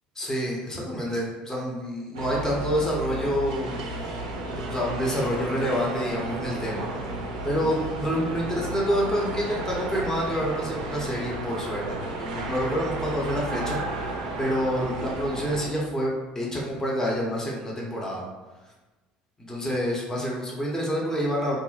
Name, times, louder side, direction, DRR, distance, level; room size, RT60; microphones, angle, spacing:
voice 1, 0.2-4.1 4.5-6.9 7.4-18.3 19.5-21.6, equal, 15° left, -3 dB, 0.9 m, -28 dB
sound 1, 2.1-15.7, right 2 dB, 80° right, 0.4 m, -33 dB
2.5 x 2.0 x 3.9 m, 1.2 s
hypercardioid pair, 70°, 4 cm